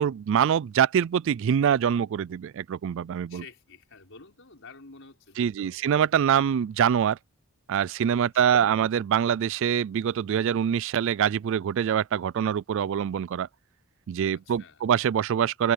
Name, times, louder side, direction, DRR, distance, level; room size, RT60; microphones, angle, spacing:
voice 1, 0.0-3.4 5.4-7.2 7.7-13.5 14.1-15.7, right 8 dB, 60° right, 0.3 m, -24 dB
voice 2, 3.3-5.8 8.2-8.8 14.3-14.8, left 4 dB, 60° left, 5.9 m, -50 dB
head